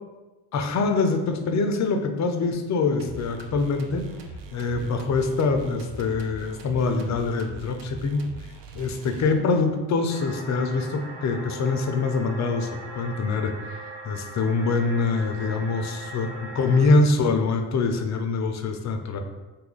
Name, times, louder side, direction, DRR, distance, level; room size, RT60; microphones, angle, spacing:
voice 1, 0.5-4.0 4.5-8.2 8.7-13.8 14.0-19.2, left 3 dB, 35° left, 6 dB, 0.5 m, -24 dB
sound 1, 3.0-9.7, right 3 dB, 60° right, 0.5 m, -41 dB
sound 2, 10.1-17.0, right 2 dB, 80° right, 0.9 m, -40 dB
2.7 x 2.3 x 3.7 m, 1.1 s
supercardioid pair, 70°, 48 cm